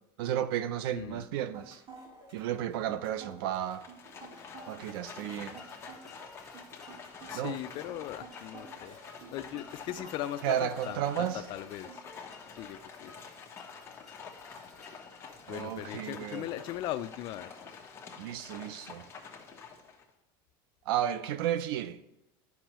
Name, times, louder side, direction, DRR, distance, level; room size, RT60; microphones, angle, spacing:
voice 1, 0.2-1.8 2.3-3.8 4.7-5.6 7.3-7.6 10.4-11.4 15.5-16.4 18.2-19.0 20.9-22.0, right 11 dB, 75° right, 0.6 m, -33 dB
voice 2, 0.9-1.2 7.3-9.0 9.3-12.0 12.6-13.1 15.5-17.5, left 13 dB, 40° left, 0.4 m, -39 dB
sound 1, 1.4-12.0, right 4 dB, 45° right, 2.1 m, -51 dB
Livestock farm animals working animals, 3.7-20.1, left 5 dB, 20° left, 1.0 m, -48 dB
sound 2, 4.6-16.9, left 3 dB, 5° left, 1.7 m, -55 dB
11.5 x 5.4 x 3.0 m
supercardioid pair, 150°, 12 cm